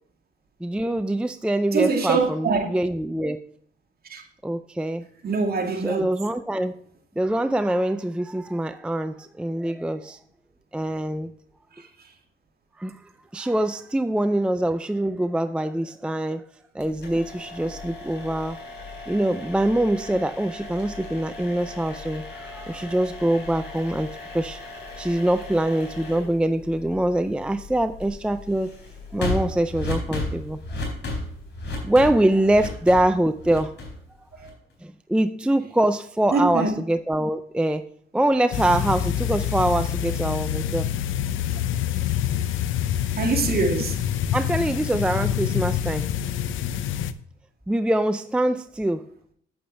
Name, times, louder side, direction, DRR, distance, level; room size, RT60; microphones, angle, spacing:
voice 1, 0.6-3.4 4.4-5.1 5.8-6.7 7.2-10.2 10.7-11.3 12.8-13.0 13.3-16.4 16.7-18.6 19.1-24.6 25.0-28.7 29.1-30.6 31.8-33.8 34.8-37.9 38.1-40.9 44.3-46.1 47.7-49.1, right 1 dB, 5° right, 0.4 m, -24 dB
voice 2, 1.7-2.7 4.1-4.2 5.2-6.0 34.4-34.5 36.3-36.7 43.2-44.0, right 4 dB, 50° right, 2.4 m, -23 dB
sound 1, 16.8-34.7, left 2 dB, 60° left, 4.1 m, -36 dB
sound 2, 38.5-47.1, left 10 dB, 80° left, 0.6 m, -26 dB
8.6 x 8.6 x 3.3 m
cardioid pair, 90°, 20 cm